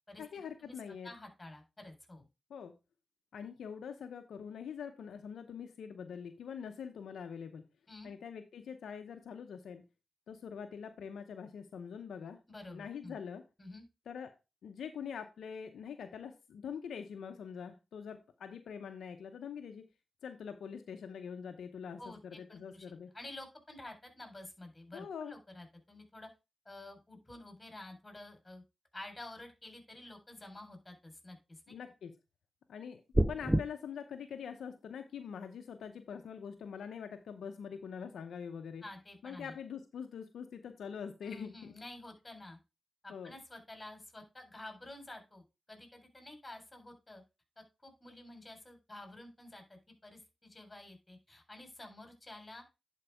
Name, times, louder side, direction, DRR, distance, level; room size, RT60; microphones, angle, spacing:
voice 1, 0.2-1.1 2.5-2.7 3.3-7.7 8.0-9.8 10.3-12.4 12.7-13.4 14.1-14.3 14.6-19.8 20.2-23.1 24.9-25.3 31.7-32.1 32.7-33.0 33.3-38.8 39.2-41.7 43.1-43.3, left 7 dB, 80° left, 7 dB, 0.7 m, -44 dB
voice 2, 1.0-2.3 7.9-8.1 12.5-13.2 13.6-13.8 22.0-22.9 23.1-26.3 26.7-28.6 28.9-31.8 38.8-39.5 41.2-42.6 43.0-47.2 47.6-52.6, left 2 dB, 20° left, 5 dB, 4.0 m, -50 dB
sound 1, 33.1-33.6, right 1 dB, 10° right, 0.5 m, -27 dB
10.5 x 4.6 x 3.4 m, 0.26 s
supercardioid pair, 50°, 0 cm